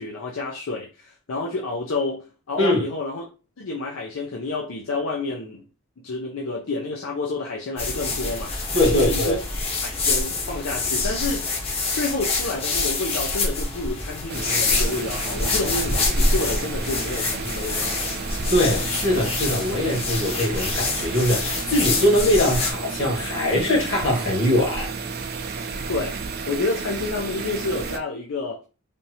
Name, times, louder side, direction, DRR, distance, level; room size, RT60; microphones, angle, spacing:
voice 1, 0.0-3.3 3.6-5.7 6.0-8.6 8.9-9.4 9.8-11.5 11.9-18.1 25.9-26.2 26.5-28.6, left 3 dB, 85° left, 0.6 m, -29 dB
voice 2, 2.6-2.9 8.7-9.4 18.5-24.9, left 1 dB, 65° left, 1.9 m, -22 dB
sound 1, 7.8-22.7, left 3 dB, 30° left, 0.7 m, -26 dB
sound 2, 14.3-28.0, right 4 dB, 50° right, 0.4 m, -32 dB
3.4 x 2.7 x 2.8 m
head